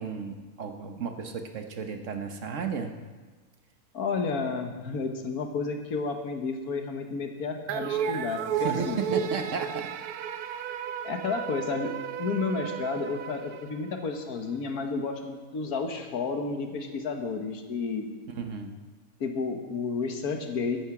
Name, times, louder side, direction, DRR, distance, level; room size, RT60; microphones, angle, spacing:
voice 1, 0.0-2.9 8.6-9.9 18.4-18.8, right 5 dB, 60° right, 6 dB, 1.3 m, -33 dB
voice 2, 3.9-9.0 11.0-11.9 12.2-18.1 19.2-20.8, left 4 dB, 85° left, 4 dB, 1.7 m, -31 dB
sound 1, 7.7-14.2, right 9 dB, 85° right, 1.1 m, -33 dB
14.0 x 10.0 x 4.9 m, 1.4 s
omnidirectional pair, 1.5 m